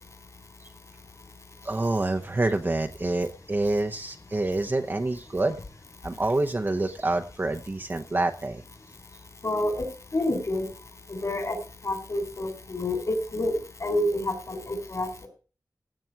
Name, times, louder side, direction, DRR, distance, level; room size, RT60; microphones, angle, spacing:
voice 1, 1.6-5.6 6.0-8.6, right 2 dB, 30° right, 5 dB, 0.8 m, -27 dB
voice 2, 9.4-9.8 10.1-10.7 11.1-11.6 11.8-15.3, left 1 dB, 55° left, 6 dB, 3.6 m, -28 dB
16.5 x 7.5 x 4.6 m, 0.37 s
wide cardioid pair, 95°, 7 cm